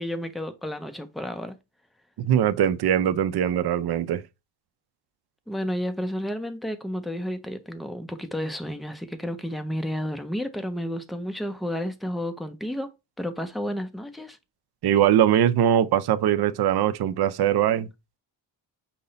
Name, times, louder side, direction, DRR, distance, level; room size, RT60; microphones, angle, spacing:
voice 1, 0.0-1.6 5.5-14.4, equal, ahead, 0.4 m, -31 dB
voice 2, 2.2-4.2 14.8-17.9, right 10 dB, 60° right, 0.5 m, -21 dB
5.4 x 2.1 x 3.9 m
cardioid pair, 110°, 45 cm